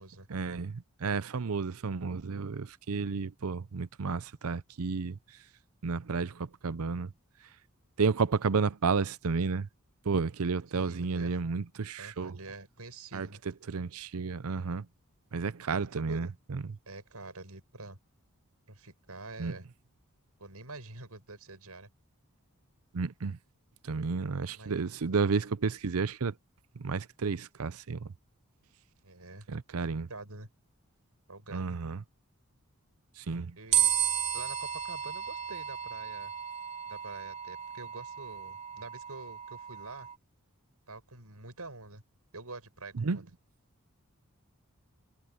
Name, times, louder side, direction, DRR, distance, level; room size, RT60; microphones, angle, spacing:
voice 1, 0.3-5.2 5.8-7.1 8.0-9.7 10.1-12.4 13.1-13.3 13.7-14.9 15.3-16.6 19.4-19.5 22.9-23.4 23.8-26.3 26.8-28.1 29.5-30.1 31.5-32.0 33.2-33.6 43.0-43.2, right 5 dB, 75° right, 0.6 m, -31 dB
voice 2, 10.7-11.4 12.0-13.4 15.4-16.3 16.9-18.0 18.7-19.7 20.4-21.9 24.5-24.8 29.0-29.5 30.1-30.5 31.3-31.8 33.6-33.9 34.3-36.3 36.9-40.1 40.9-42.0 42.3-43.3, right 3 dB, 90° right, 6.3 m, -46 dB
sound 1, 33.7-40.1, right 10 dB, 30° right, 3.0 m, -33 dB
head